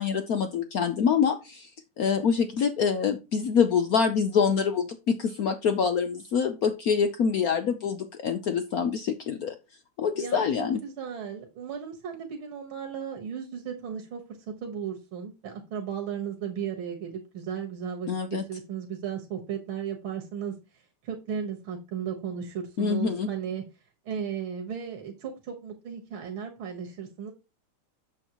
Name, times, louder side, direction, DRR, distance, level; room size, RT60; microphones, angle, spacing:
voice 1, 0.0-1.7 2.0-9.5 10.0-10.8 18.1-18.4 22.8-23.3, left 6 dB, 75° left, 8 dB, 0.8 m, -25 dB
voice 2, 10.2-14.2 14.5-23.6 24.1-27.3, right 7 dB, 65° right, 1 dB, 2.1 m, -35 dB
8.1 x 7.0 x 2.9 m, 0.26 s
omnidirectional pair, 2.4 m